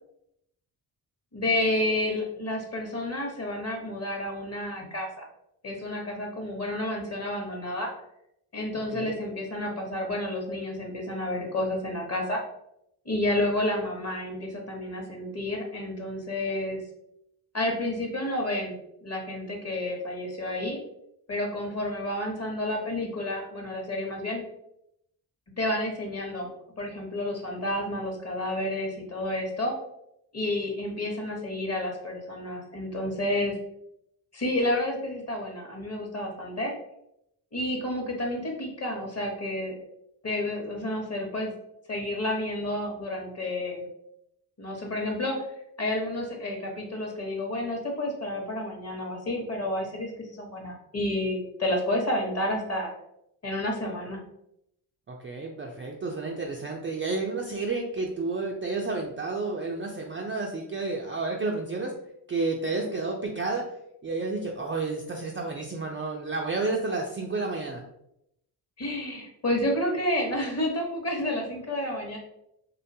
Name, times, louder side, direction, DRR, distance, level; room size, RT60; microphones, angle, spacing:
voice 1, 1.3-5.3 5.6-7.9 8.5-12.4 13.0-16.8 17.5-18.8 19.0-20.8 21.3-24.4 25.6-26.5 26.8-29.7 30.3-33.6 34.3-36.7 37.5-39.7 40.2-41.5 41.9-43.8 44.6-45.5 45.8-52.9 53.4-54.2 68.8-72.2, left 1 dB, 30° left, 1 dB, 0.9 m, -30 dB
voice 2, 8.7-9.1 55.1-61.9 62.3-63.7 64.0-67.8, right 3 dB, 25° right, -1 dB, 0.3 m, -31 dB
2.5 x 2.2 x 2.6 m, 0.79 s
supercardioid pair, 40°, 50 cm